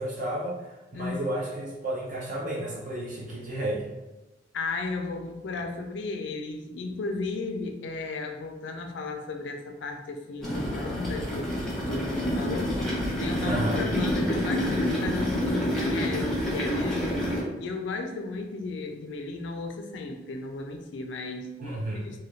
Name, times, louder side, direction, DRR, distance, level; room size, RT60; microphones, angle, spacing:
voice 1, 0.0-3.9 13.4-13.9 21.6-22.1, right 1 dB, 45° right, -4 dB, 0.5 m, -32 dB
voice 2, 0.9-1.3 4.5-17.3 17.6-22.2, left 3 dB, 85° left, 4 dB, 0.4 m, -35 dB
sound 1, 10.4-17.4, equal, 5° left, 0.6 m, -28 dB
2.3 x 2.2 x 3.1 m, 1.1 s
head